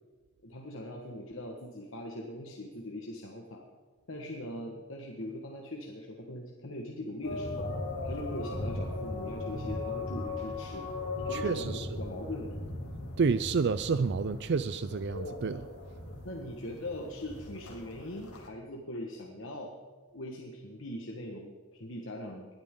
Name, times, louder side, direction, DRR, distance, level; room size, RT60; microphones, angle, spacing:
voice 1, 0.4-3.6 4.1-7.7 8.0-10.9 11.2-12.6 16.2-19.7 20.1-22.5, left 1 dB, 60° left, 0 dB, 1.5 m, -41 dB
sound 1, 7.2-18.5, left 2 dB, 85° left, 2.6 m, -38 dB
voice 2, 11.3-11.9 13.2-15.7, right 5 dB, 50° right, 13 dB, 0.4 m, -29 dB
21.0 x 12.5 x 3.8 m, 1.4 s
head